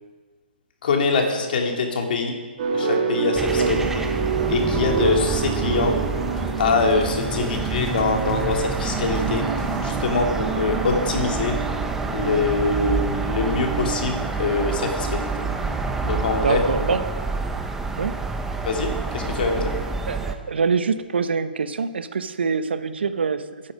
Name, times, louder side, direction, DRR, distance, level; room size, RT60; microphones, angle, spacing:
voice 1, 0.8-2.4 2.7-3.8 4.5-6.0 6.6-9.4 9.8-11.6 12.1-15.3 16.0-16.6 18.6-19.7, left 4 dB, 60° left, 2 dB, 2.7 m, -24 dB
sound 1, 2.6-15.9, right 6 dB, 40° right, 2.7 m, -28 dB
sound 2, 3.3-20.3, right 3 dB, 5° right, 0.9 m, -28 dB
voice 2, 3.6-3.9 7.4-7.5 16.4-17.1 18.0-18.2 20.1-23.6, right 5 dB, 80° right, 11 dB, 1.0 m, -25 dB
sound 3, 6.4-10.7, left 4 dB, 10° left, 1.7 m, -39 dB
15.5 x 9.8 x 5.3 m, 1.5 s
hypercardioid pair, 155°, 6 cm